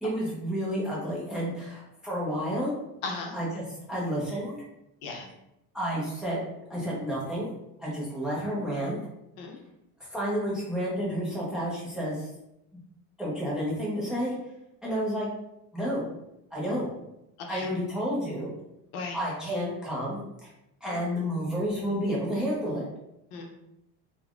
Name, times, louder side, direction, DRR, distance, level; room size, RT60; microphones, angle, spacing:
voice 1, 0.0-2.7 3.3-4.6 5.7-6.4 6.7-7.5 7.8-9.0 10.0-12.3 13.2-14.4 14.8-15.3 15.7-16.1 16.5-16.9 17.5-18.5 19.1-20.5 20.8-22.9, equal, ahead, -6 dB, 0.6 m, -30 dB
voice 2, 3.0-3.3 5.0-5.3 9.4-9.6 17.4-17.7 18.9-19.2 20.9-21.0 23.3-23.5, left 3 dB, 65° left, 1 dB, 0.8 m, -36 dB
3.3 x 2.2 x 2.4 m, 0.84 s
cardioid pair, 145°, 40 cm